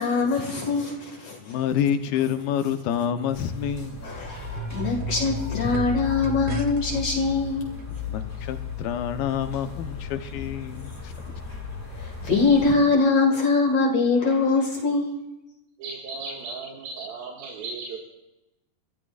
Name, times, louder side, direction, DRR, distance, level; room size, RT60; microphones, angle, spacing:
voice 1, 0.0-1.5 4.0-7.7 11.9-15.1, left 3 dB, 50° left, 1 dB, 2.8 m, -23 dB
voice 2, 1.4-4.1 8.1-11.1, left 9 dB, 80° left, 8 dB, 2.8 m, -28 dB
sound 1, 2.6-7.0 7.8-7.9, right 5 dB, 65° right, 1.4 m, -36 dB
sound 2, 3.3-12.7, left 7 dB, 5° left, 1.6 m, -35 dB
voice 3, 15.8-18.0, right 4 dB, 80° right, -1 dB, 3.8 m, -36 dB
26.0 x 13.5 x 2.5 m, 0.98 s
omnidirectional pair, 4.2 m